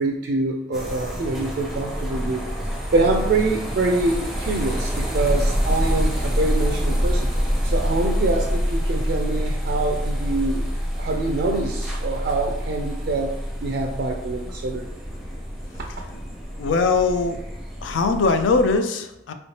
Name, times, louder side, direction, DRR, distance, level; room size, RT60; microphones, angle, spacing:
voice 1, 0.0-2.4 2.9-7.3 7.6-10.6 11.0-13.4 13.6-14.8 15.7-15.8, right 2 dB, 55° right, 2 dB, 0.3 m, -25 dB
sound 1, 0.7-18.8, equal, ahead, 0.5 m, -26 dB
voice 2, 16.6-17.4 17.8-19.3, left 4 dB, 80° left, 8 dB, 0.3 m, -21 dB
3.1 x 3.1 x 2.8 m, 0.85 s
head